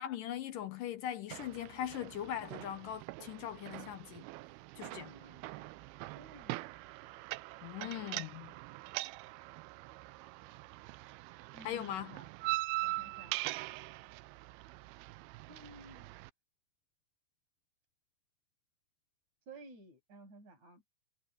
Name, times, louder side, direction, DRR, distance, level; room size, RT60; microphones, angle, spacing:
voice 1, 0.0-4.2 4.8-5.1 7.6-8.5 11.6-12.2, left 11 dB, 70° left, 2.3 m, -40 dB
sound 1, 1.3-16.3, right 20 dB, 85° right, 2.5 m, -42 dB
voice 2, 4.8-5.9 6.1-6.8 11.5-12.3 12.8-13.4 15.5-16.2 19.5-20.8, right 2 dB, 45° right, 9.3 m, -55 dB
omnidirectional pair, 4.5 m